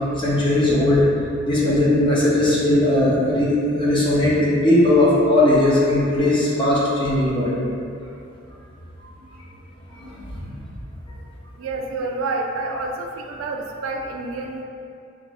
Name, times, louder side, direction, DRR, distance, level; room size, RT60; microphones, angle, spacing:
voice 1, 0.2-1.0 1.5-7.6 10.0-10.2, left 1 dB, 25° left, -7 dB, 0.7 m, -18 dB
voice 2, 11.6-14.6, right 3 dB, 85° right, 3 dB, 0.3 m, -28 dB
3.4 x 2.5 x 3.3 m, 2.5 s
head